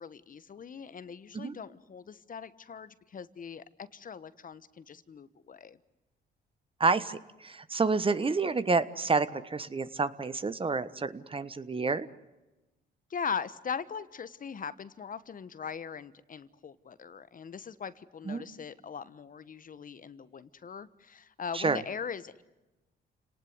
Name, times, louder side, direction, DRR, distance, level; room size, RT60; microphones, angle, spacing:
voice 1, 0.0-5.8 13.1-22.4, left 6 dB, 45° left, 15 dB, 1.2 m, -40 dB
voice 2, 6.8-12.1 18.2-18.4 21.5-21.8, right 4 dB, 25° right, 14 dB, 1.3 m, -29 dB
29.0 x 19.0 x 9.5 m, 1.1 s
cardioid pair, 90°, 20 cm